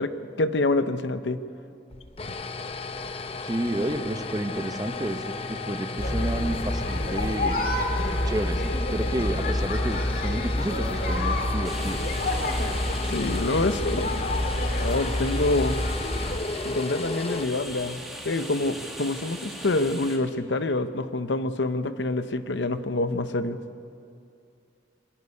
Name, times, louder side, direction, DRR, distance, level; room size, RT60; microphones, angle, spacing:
voice 1, 0.0-1.4 13.1-14.1 14.8-15.8 16.6-23.6, left 2 dB, 85° left, 11 dB, 0.8 m, -26 dB
sound 1, 1.9-18.1, left 3 dB, 35° left, 0.7 m, -35 dB
voice 2, 3.4-7.7 8.3-12.0, right 1 dB, 20° right, 8 dB, 0.9 m, -31 dB
sound 2, 6.0-16.4, left 1 dB, 55° left, 1.9 m, -28 dB
sound 3, 11.6-20.2, right 1 dB, ahead, 2.0 m, -40 dB
24.5 x 11.0 x 9.7 m, 2.6 s
head